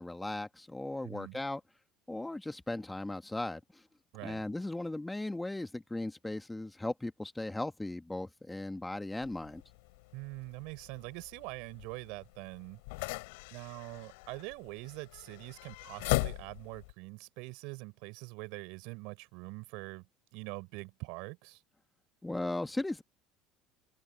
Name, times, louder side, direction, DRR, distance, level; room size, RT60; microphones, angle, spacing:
voice 1, 0.0-1.6 2.1-3.8 4.2-9.6 22.2-23.0, left 2 dB, 10° left, 2.0 m, -37 dB
voice 2, 1.0-1.4 4.1-4.4 10.1-13.1 13.5-20.0 20.3-21.6, right 28 dB, 60° right, 4.9 m, -44 dB
sound 1, 9.2-16.9, left 27 dB, 65° left, 4.9 m, -39 dB
figure-of-eight pair, 65°, 0 cm